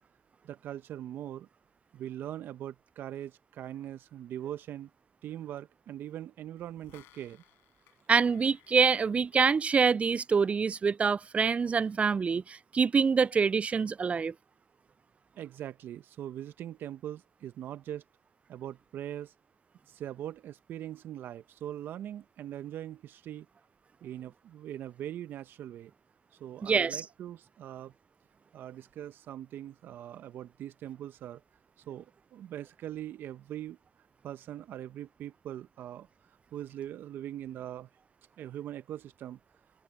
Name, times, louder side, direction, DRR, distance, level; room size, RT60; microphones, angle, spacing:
voice 1, 0.4-1.5 1.9-4.9 5.2-7.4 15.4-18.0 18.5-19.3 19.9-23.5 24.0-25.9 26.4-27.9 28.5-31.4 31.9-33.8 34.2-37.9 38.4-39.4, right 11 dB, 65° right, 1.1 m, -41 dB
sound 1, 6.6-10.1 10.4-10.5, left 17 dB, 75° left, 5.3 m, -62 dB
voice 2, 8.1-14.3 26.6-27.0, right 5 dB, 35° right, 0.4 m, -26 dB
open air
hypercardioid pair, 55°, 4 cm